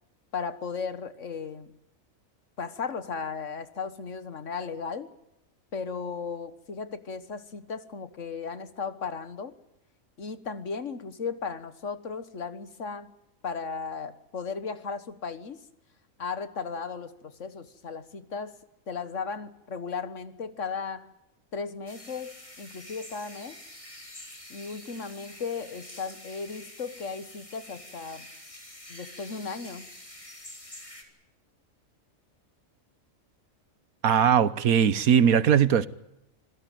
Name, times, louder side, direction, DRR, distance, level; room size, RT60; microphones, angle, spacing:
voice 1, 0.3-1.7 2.6-5.1 5.7-9.5 10.2-13.1 13.4-15.6 16.2-18.5 18.9-21.1 21.5-23.6 24.5-28.3 28.9-29.9, left 5 dB, 60° left, 1.8 m, -36 dB
sound 1, 21.9-31.0, left 1 dB, 20° left, 3.7 m, -47 dB
voice 2, 34.0-35.9, right 8 dB, 90° right, 1.5 m, -20 dB
26.5 x 16.5 x 9.2 m
omnidirectional pair, 1.5 m